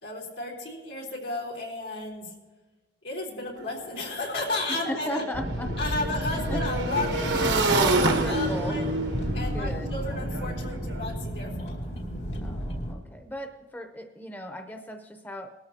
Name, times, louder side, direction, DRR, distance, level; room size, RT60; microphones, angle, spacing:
voice 1, 0.0-2.3 3.0-5.2 5.8-8.9 9.3-11.8, left 2 dB, 90° left, -2 dB, 3.5 m, -33 dB
Motorcycle / Engine, 3.6-3.7 3.9-11.1, right 2 dB, 85° right, 1.1 m, -29 dB
voice 2, 4.7-5.8 6.3-6.7 7.7-8.8 9.5-9.9 12.4-15.5, left 1 dB, 10° left, 6 dB, 0.7 m, -36 dB
sound 1, 5.3-12.9, equal, 75° left, 2.3 m, -32 dB
19.5 x 13.5 x 2.8 m, 1.2 s
head